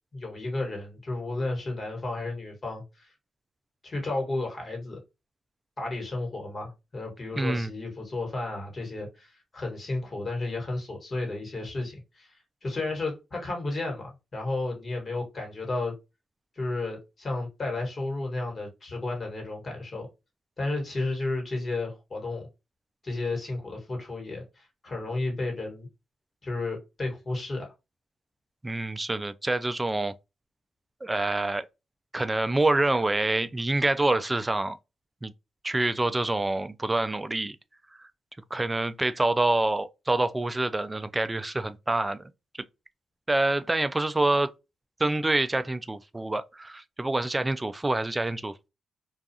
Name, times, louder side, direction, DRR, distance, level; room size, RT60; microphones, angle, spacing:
voice 1, 0.1-3.1 3.8-5.0 5.8-12.4 12.6-15.9 16.5-20.1 20.6-22.5 23.0-25.9 26.4-27.7, left 2 dB, 40° left, 1.4 m, -32 dB
voice 2, 7.4-7.7 28.6-30.1 31.0-31.7 32.1-34.8 35.2-35.3 35.6-37.6 38.5-42.3 43.3-44.5 45.0-48.7, right 2 dB, 20° right, 0.3 m, -26 dB
2.4 x 2.3 x 2.7 m
cardioid pair, 75°, 0 cm